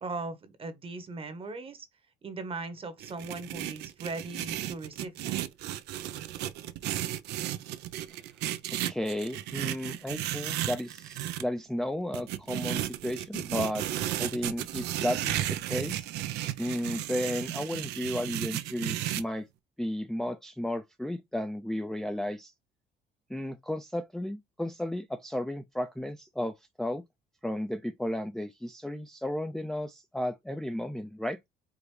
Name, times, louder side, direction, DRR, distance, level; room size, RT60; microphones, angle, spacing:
voice 1, 0.0-1.9 2.2-5.4, right 3 dB, 35° right, 1.1 m, -39 dB
sound 1, 3.0-11.4 12.1-19.2, right 13 dB, 85° right, 0.6 m, -34 dB
voice 2, 8.8-13.8 14.2-16.1 16.6-19.5 19.8-22.5 23.3-27.0 27.4-31.4, left 1 dB, ahead, 0.4 m, -33 dB
4.9 x 2.6 x 3.2 m
cardioid pair, 110°, 17 cm